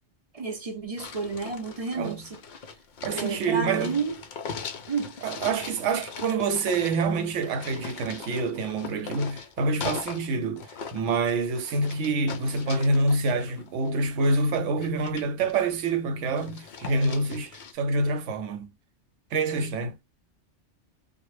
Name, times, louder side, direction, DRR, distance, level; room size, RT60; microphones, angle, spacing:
voice 1, 0.3-2.4 3.1-4.2 4.9-5.2, right 4 dB, 40° right, 0.6 m, -31 dB
sound 1, 1.0-10.3 10.6-14.4 14.8-15.9 16.3-17.7, left 5 dB, 60° left, 0.5 m, -40 dB
voice 2, 3.0-4.0 5.2-18.7 19.3-20.0, right 3 dB, 90° right, 1.0 m, -27 dB
2.1 x 2.1 x 3.1 m
omnidirectional pair, 1.2 m